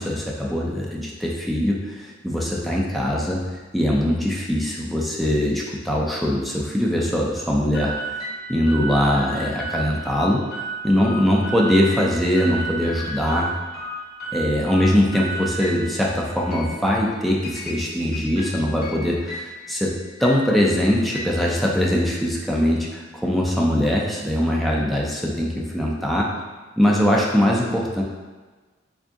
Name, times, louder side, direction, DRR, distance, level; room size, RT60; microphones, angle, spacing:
voice 1, 0.0-3.4 3.7-10.4 10.8-13.5 14.3-19.9 20.2-26.3 26.8-28.0, equal, ahead, -4 dB, 0.4 m, -22 dB
sound 1, 7.7-22.2, right 2 dB, 50° left, 1.4 m, -34 dB
3.6 x 2.5 x 3.5 m, 1.3 s
head